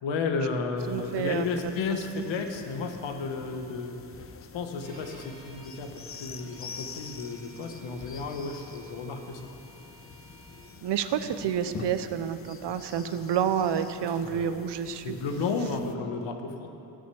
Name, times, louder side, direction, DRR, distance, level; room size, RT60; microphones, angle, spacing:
voice 1, 0.0-4.0 4.5-9.5 14.2-14.6 15.0-16.7, left 4 dB, 85° left, 5 dB, 1.3 m, -33 dB
sound 1, 0.8-16.0, left 5 dB, 30° left, 0.7 m, -46 dB
voice 2, 0.9-1.5 2.2-2.3 10.8-15.2, right 8 dB, 65° right, 11 dB, 0.8 m, -29 dB
Bowed string instrument, 4.8-10.8, right 3 dB, 45° right, 2.1 m, -54 dB
16.0 x 6.4 x 7.1 m, 2.8 s
cardioid pair, 125°, 44 cm